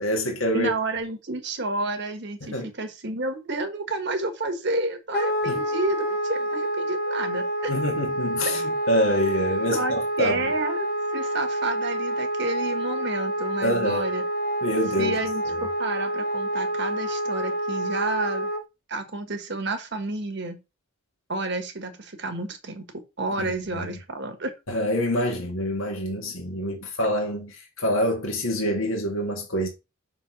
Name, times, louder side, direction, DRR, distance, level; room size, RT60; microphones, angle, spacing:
voice 1, 0.0-0.7 2.4-2.7 5.5-5.6 7.7-10.3 13.6-14.0 14.6-15.2 15.4-15.7 23.4-23.8 24.7-29.7, equal, 70° left, 1.7 m, -26 dB
voice 2, 0.5-7.8 9.7-10.9 11.1-14.3 15.0-18.5 18.9-20.6 21.3-22.9 23.2-24.5, right 2 dB, 55° right, 1.5 m, -30 dB
Wind instrument woodwind instrument, 5.1-18.6, right 1 dB, 45° left, 0.9 m, -28 dB
5.9 x 4.5 x 5.9 m
head